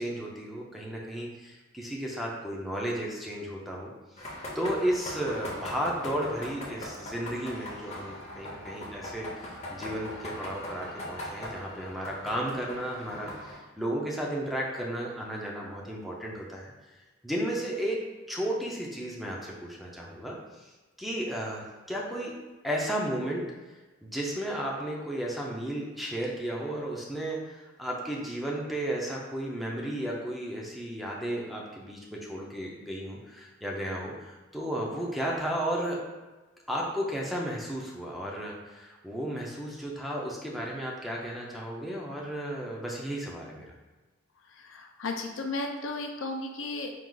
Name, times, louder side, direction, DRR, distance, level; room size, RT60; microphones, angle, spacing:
voice 1, 0.0-3.9 4.5-16.7 17.2-18.0 18.3-20.4 21.0-22.3 22.6-23.4 24.0-36.0 36.7-43.7, right 1 dB, ahead, -3 dB, 0.5 m, -33 dB
sound 1, 4.2-13.6, left 1 dB, 35° left, 0.7 m, -40 dB
voice 2, 44.4-47.0, left 2 dB, 70° left, 3 dB, 0.5 m, -35 dB
4.6 x 2.4 x 3.8 m, 1.2 s
head